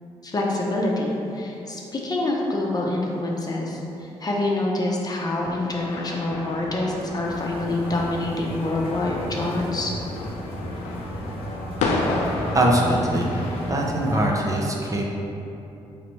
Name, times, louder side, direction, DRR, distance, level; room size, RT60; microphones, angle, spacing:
voice 1, 0.2-9.9, left 2 dB, 35° left, -2 dB, 0.7 m, -26 dB
sound 1, 5.4-13.7, left 3 dB, 85° left, 0.4 m, -32 dB
sound 2, 7.2-14.3, right 1 dB, 60° right, 0.9 m, -34 dB
voice 2, 12.5-13.4 13.7-15.1, right 1 dB, 30° right, -2 dB, 0.6 m, -22 dB
4.0 x 3.1 x 3.0 m, 2.9 s
supercardioid pair, 60°, 11 cm